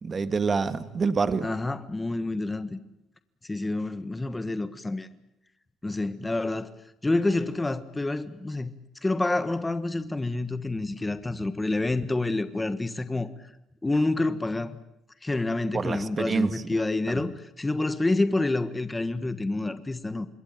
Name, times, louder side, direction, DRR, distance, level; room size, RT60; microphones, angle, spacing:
voice 1, 0.0-1.5 15.7-16.7 17.1-17.2, right 5 dB, 30° right, 1.7 m, -27 dB
voice 2, 1.4-2.8 3.5-5.1 5.8-6.7 7.0-8.7 9.0-13.3 13.8-14.8 15.2-20.3, left 2 dB, 15° left, 1.4 m, -28 dB
26.5 x 21.5 x 9.0 m
cardioid pair, 110°, 0 cm